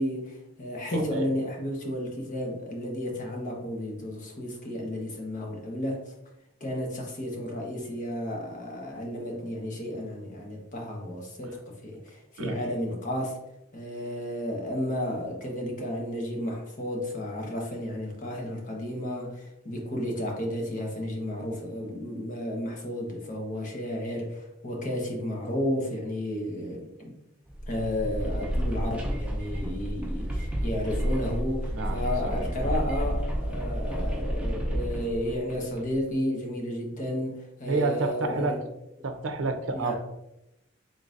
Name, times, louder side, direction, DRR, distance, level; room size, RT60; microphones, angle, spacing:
voice 1, 0.0-6.0 6.6-13.4 13.7-27.1 27.7-38.6 39.7-39.9, left 1 dB, 40° left, -1 dB, 1.0 m, -32 dB
voice 2, 0.9-1.3 12.4-12.7 31.7-32.3 37.7-38.6 39.0-39.9, right 3 dB, 80° right, 7 dB, 0.5 m, -29 dB
sound 1, 27.5-36.0, equal, 5° right, 0.6 m, -30 dB
3.9 x 3.8 x 2.5 m, 0.89 s
head